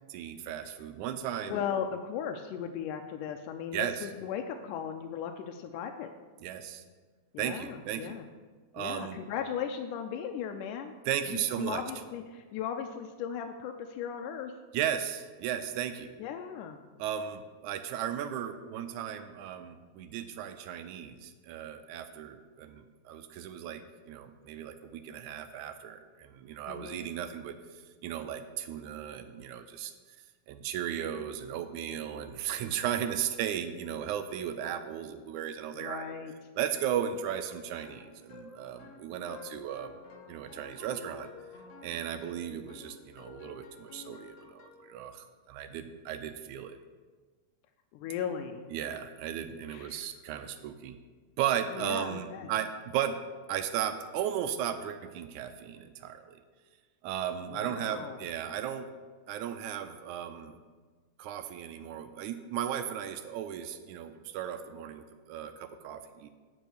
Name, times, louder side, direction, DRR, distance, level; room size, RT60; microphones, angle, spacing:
voice 1, 0.1-1.6 3.7-4.1 6.4-6.8 7.4-8.1 8.7-9.2 11.1-11.8 14.7-16.1 17.0-27.6 28.0-29.9 30.5-36.1 36.6-40.0 40.3-41.3 41.8-46.8 48.7-51.0 51.4-53.2 53.5-56.4 57.0-58.9 59.3-60.5 61.2-66.3, right 9 dB, 80° right, 9 dB, 1.9 m, -35 dB
voice 2, 1.5-6.1 7.3-8.3 8.8-10.9 11.3-14.5 16.2-16.8 26.7-27.0 35.7-36.3 47.9-48.7 49.7-50.1 51.7-52.5 57.5-58.2, left 8 dB, 90° left, 5 dB, 2.1 m, -37 dB
sound 1, 37.3-45.0, left 6 dB, 70° left, 1.6 m, -52 dB
9.1 x 5.4 x 6.4 m, 1.4 s
omnidirectional pair, 3.6 m